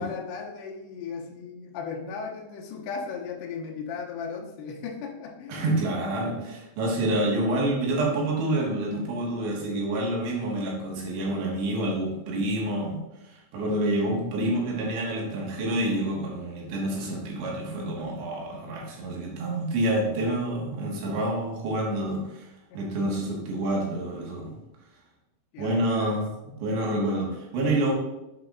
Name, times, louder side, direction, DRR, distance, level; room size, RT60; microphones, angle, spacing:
voice 1, 0.0-5.7 6.2-6.5 22.7-23.0 25.5-26.6, left 5 dB, 75° left, 1 dB, 2.8 m, -37 dB
voice 2, 5.5-22.5 22.7-24.5 25.6-26.3 26.6-27.9, right 1 dB, 75° right, -3 dB, 3.4 m, -28 dB
7.6 x 6.1 x 2.4 m, 0.94 s
omnidirectional pair, 5.1 m